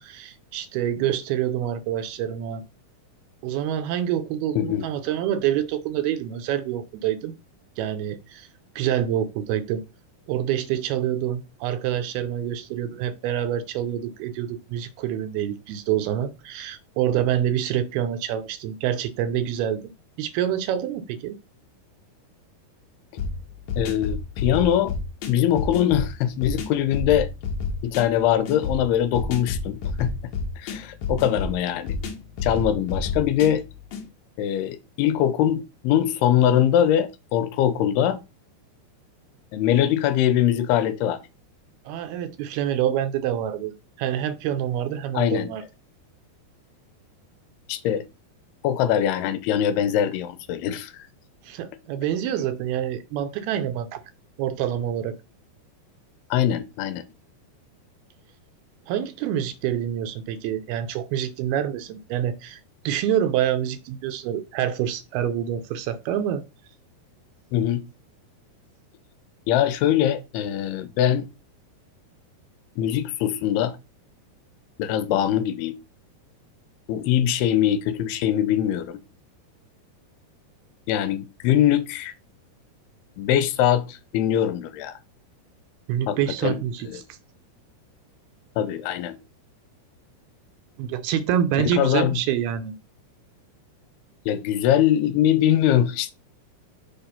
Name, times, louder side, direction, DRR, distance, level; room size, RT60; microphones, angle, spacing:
voice 1, 0.0-2.6 3.4-7.3 7.8-8.5 8.8-9.8 10.3-19.8 20.2-21.4 41.9-43.7 44.0-45.6 51.5-54.0 54.4-55.2 58.9-62.6 62.9-66.4 85.9-87.0 90.8-92.7, right 10 dB, 80° right, 2.5 m, -26 dB
voice 2, 4.6-4.9 23.8-24.9 25.3-27.3 27.8-30.1 30.6-32.0 32.4-33.7 34.4-38.2 39.5-41.2 45.1-45.5 47.7-48.0 48.6-51.1 56.3-57.0 67.5-67.8 69.5-71.3 72.8-73.7 74.8-75.8 76.9-79.0 80.9-82.1 83.2-84.9 86.1-86.6 86.9-87.0 88.6-89.2 91.6-92.2 94.3-96.1, left 10 dB, 80° left, 2.6 m, -22 dB
sound 1, 23.2-34.1, left 4 dB, 65° left, 1.9 m, -30 dB
6.9 x 3.4 x 5.6 m
omnidirectional pair, 4.7 m